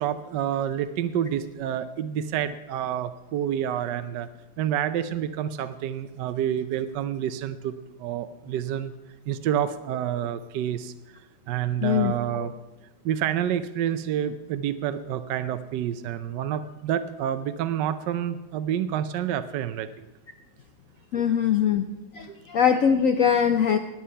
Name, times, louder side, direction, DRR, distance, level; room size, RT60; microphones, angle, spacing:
voice 1, 0.0-4.3 4.6-8.9 9.3-11.2 11.5-12.5 13.0-20.1 22.3-22.4, right 10 dB, 75° right, 11 dB, 1.2 m, -28 dB
voice 2, 11.8-12.5 21.1-21.9 22.1-23.8, left 8 dB, 70° left, 8 dB, 0.7 m, -22 dB
20.0 x 7.2 x 5.6 m, 1.1 s
omnidirectional pair, 2.0 m